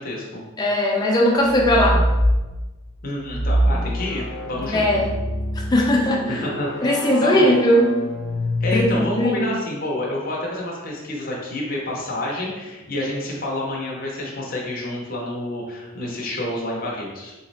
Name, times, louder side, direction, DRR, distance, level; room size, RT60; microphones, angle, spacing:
voice 1, 0.0-0.4 3.0-5.0 6.3-7.6 8.6-17.3, left 1 dB, 45° left, -3 dB, 0.8 m, -29 dB
voice 2, 0.6-2.0 4.7-5.1 5.7-6.4 6.8-7.9 8.7-8.9 9.2-9.5, left 1 dB, 20° left, -1 dB, 0.4 m, -18 dB
sound 1, 1.5-2.4 3.3-9.3, equal, 75° left, 0.5 m, -25 dB
3.9 x 3.1 x 2.7 m, 1.1 s
head